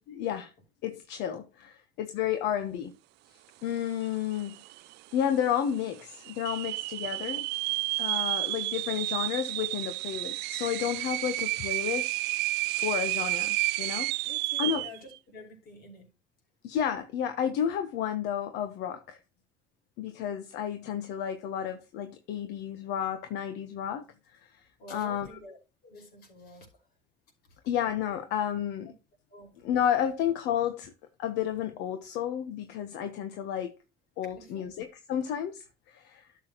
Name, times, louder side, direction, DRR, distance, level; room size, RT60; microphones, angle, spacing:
voice 1, 0.1-0.5 0.8-2.9 3.6-4.6 5.1-7.5 8.0-12.2 12.8-14.1 14.6-14.8 16.6-19.2 20.0-24.0 24.3-24.6 24.9-25.4 27.7-28.9 29.6-30.9 31.2-33.8 34.2-36.3, left 9 dB, 90° left, 1.1 m, -31 dB
sound 1, 4.1-4.2 4.4-4.9 5.4-5.5 6.3-15.0, right 20 dB, 85° right, 0.4 m, -31 dB
voice 2, 14.2-16.1 24.8-25.6 25.8-26.7 29.3-29.6 34.4-34.7, left 2 dB, 70° left, 5.2 m, -48 dB
12.0 x 7.2 x 3.0 m
cardioid pair, 110°, 17 cm